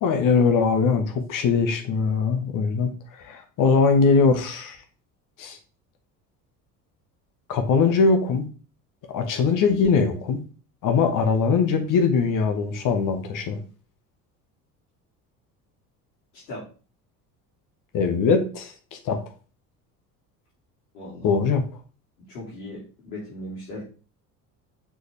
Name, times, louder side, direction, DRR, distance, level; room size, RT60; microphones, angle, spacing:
voice 1, 0.0-4.8 5.4-5.6 7.5-8.4 9.1-10.4 10.8-13.6 17.9-19.2 21.2-21.6, left 5 dB, 40° left, 6 dB, 1.4 m, -21 dB
voice 2, 16.3-16.7 20.9-21.4 22.3-23.8, left 1 dB, 65° left, -6 dB, 3.0 m, -38 dB
6.5 x 5.1 x 3.5 m, 0.37 s
figure-of-eight pair, 60°, 47 cm